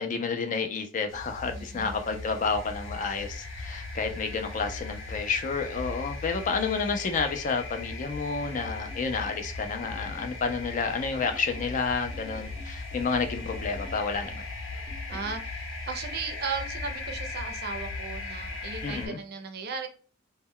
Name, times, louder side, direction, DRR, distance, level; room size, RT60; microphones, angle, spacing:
voice 1, 0.0-14.4 18.8-19.2, left 4 dB, 40° left, 6 dB, 0.4 m, -30 dB
sound 1, 1.1-19.1, left 3 dB, 70° left, 0.8 m, -38 dB
voice 2, 1.5-1.9 14.7-14.8 15.1-19.9, right 5 dB, 55° right, 7 dB, 0.5 m, -36 dB
sound 2, 8.4-9.4 9.8-10.4 11.2-11.7 12.1-13.1 13.5-14.0 14.9-15.4, equal, 15° left, 0.8 m, -49 dB
2.1 x 2.1 x 3.5 m, 0.39 s
head